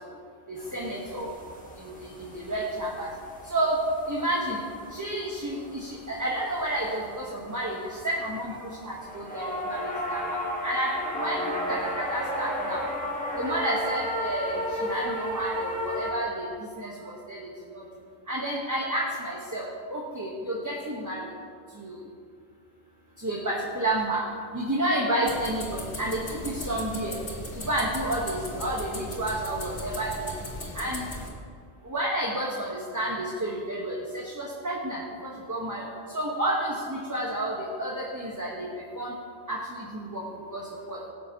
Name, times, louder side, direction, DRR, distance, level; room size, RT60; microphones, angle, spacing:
voice 1, 0.5-1.3 1.7-3.1 3.4-3.8 4.0-4.6 4.9-12.8 13.4-17.4 17.7-17.8 18.3-21.3 21.7-22.0 23.2-24.2 24.5-27.2 27.5-30.5 30.7-31.0 31.8-39.1 39.5-41.0, right 1 dB, 15° right, -4 dB, 1.2 m, -31 dB
sound 1, 0.6-16.1, equal, 5° left, 1.3 m, -35 dB
sound 2, 25.2-31.3, left 1 dB, 85° left, 2.3 m, -38 dB
17.5 x 8.7 x 2.9 m, 2.1 s
omnidirectional pair, 1.1 m